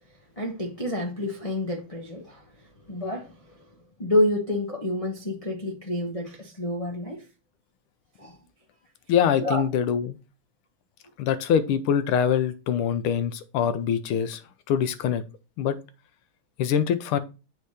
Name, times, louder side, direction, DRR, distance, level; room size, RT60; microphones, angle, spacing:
voice 1, 0.4-2.4 2.9-3.6 4.0-7.2 8.2-8.4 9.4-9.6, left 1 dB, 65° left, 0.3 m, -28 dB
voice 2, 9.1-10.2 11.2-14.4 14.7-15.2 15.6-15.8 16.6-17.2, left 8 dB, 90° left, 1.6 m, -24 dB
7.9 x 2.8 x 4.8 m
omnidirectional pair, 2.4 m